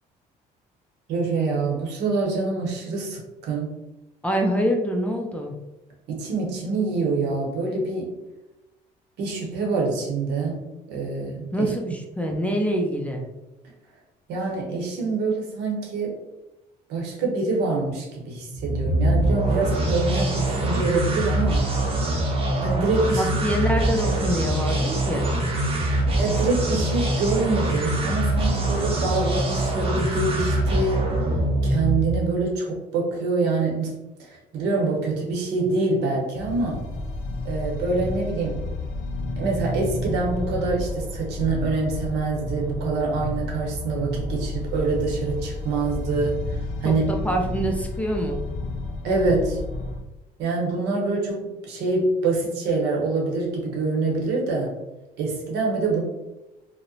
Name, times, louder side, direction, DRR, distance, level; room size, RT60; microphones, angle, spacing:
voice 1, 1.1-3.2 3.5-3.7 6.1-8.1 9.2-10.6 10.9-11.7 14.3-16.2 16.9-21.7 22.6-23.3 26.2-31.1 31.6-36.8 37.4-38.7 39.4-47.0 49.0-49.6 50.4-54.7 55.2-56.0, right 3 dB, 85° right, -1 dB, 0.8 m, -25 dB
voice 2, 4.2-5.6 11.5-13.3 23.2-25.3 46.8-48.4, equal, 10° left, 1 dB, 0.4 m, -25 dB
sound 1, 18.5-32.3, right 1 dB, 35° right, 0.7 m, -24 dB
sound 2, 36.3-50.0, left 2 dB, 65° left, 0.5 m, -31 dB
2.7 x 2.1 x 2.6 m, 0.97 s
cardioid pair, 110°, 17 cm